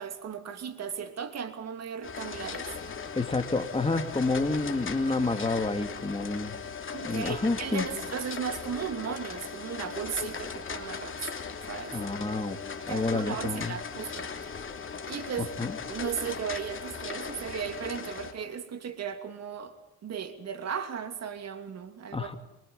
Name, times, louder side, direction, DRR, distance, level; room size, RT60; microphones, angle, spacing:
voice 1, 0.0-2.7 6.9-11.3 11.7-12.0 12.9-14.3 15.1-15.5 15.9-19.7 20.0-22.3, right 7 dB, 60° right, 7 dB, 2.7 m, -36 dB
sound 1, 2.0-18.3, left 5 dB, 45° left, 3.0 m, -38 dB
voice 2, 3.2-6.5 7.0-7.8 11.9-12.6 12.8-13.8 15.4-15.8 22.1-22.3, left 3 dB, 20° left, 7 dB, 2.5 m, -29 dB
24.0 x 24.0 x 5.6 m, 0.94 s
cardioid pair, 90°, 30 cm